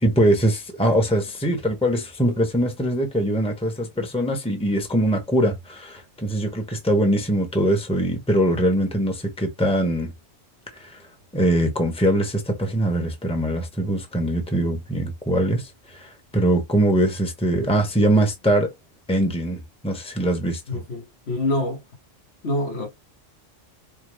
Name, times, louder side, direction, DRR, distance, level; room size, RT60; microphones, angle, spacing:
voice 1, 0.0-10.1 10.8-11.0 11.3-18.7 19.1-20.8, right 1 dB, 5° left, 1.1 m, -22 dB
voice 2, 20.7-21.8 22.4-22.9, left 1 dB, 60° left, 1.6 m, -26 dB
5.7 x 2.3 x 3.2 m
omnidirectional pair, 1.2 m